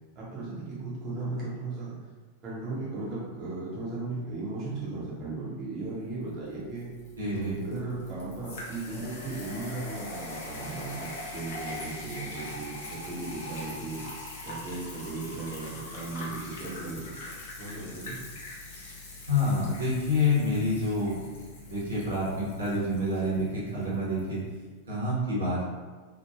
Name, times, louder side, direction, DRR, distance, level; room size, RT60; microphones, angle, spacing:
voice 1, 0.1-2.0 2.4-6.9 7.3-14.1 14.4-18.2, right 3 dB, 35° right, -8 dB, 0.8 m, -36 dB
sound 1, 6.3-24.3, left 2 dB, 55° left, 0.7 m, -42 dB
voice 2, 7.2-7.6 19.3-21.2 21.6-24.4 24.9-25.6, left 2 dB, 75° right, -7 dB, 1.0 m, -28 dB
3.1 x 2.1 x 2.3 m, 1.3 s
figure-of-eight pair, 90°, 0 cm